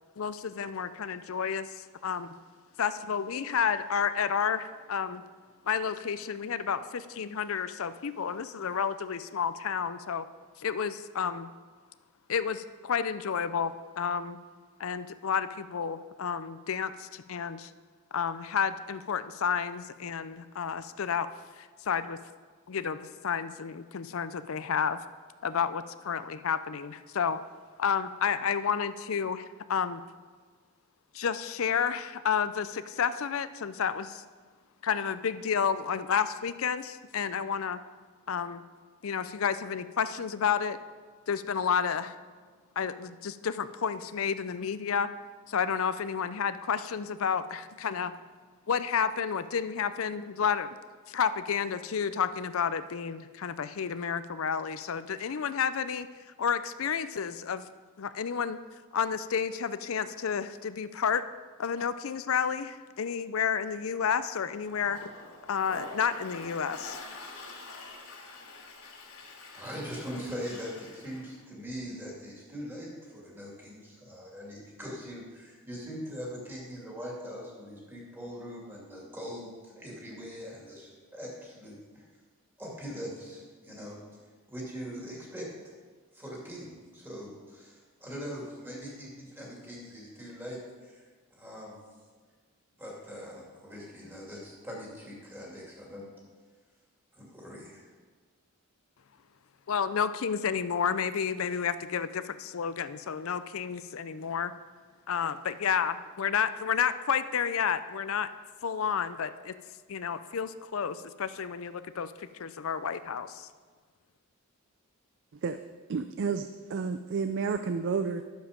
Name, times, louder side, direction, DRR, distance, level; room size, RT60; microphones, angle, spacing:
voice 1, 0.2-2.3 2.8-5.2 5.7-10.3 10.6-11.5 12.3-14.4 14.8-17.7 18.1-21.3 21.6-22.2 22.7-25.0 25.4-27.4 27.8-30.0 31.1-34.2 34.8-37.8 38.3-38.6 39.0-40.8 41.3-42.1 42.8-45.1 45.5-48.1 48.7-50.7 51.1-56.1 56.4-57.7 58.0-58.6 58.9-61.2 61.6-65.1 65.5-67.0 99.7-104.5 105.1-108.3 108.6-109.5 109.9-113.5, left 7 dB, 65° left, 13 dB, 0.5 m, -31 dB
Toilet flush, 64.6-71.4, left 3 dB, 80° left, 2.9 m, -46 dB
voice 2, 69.5-82.0 82.6-84.0 84.5-85.7 86.1-91.1 91.3-91.9 92.8-96.1 97.1-97.9, equal, 10° right, -4 dB, 2.5 m, -42 dB
voice 3, 115.9-118.2, right 5 dB, 55° right, 9 dB, 0.4 m, -31 dB
11.5 x 7.2 x 5.2 m, 1.5 s
head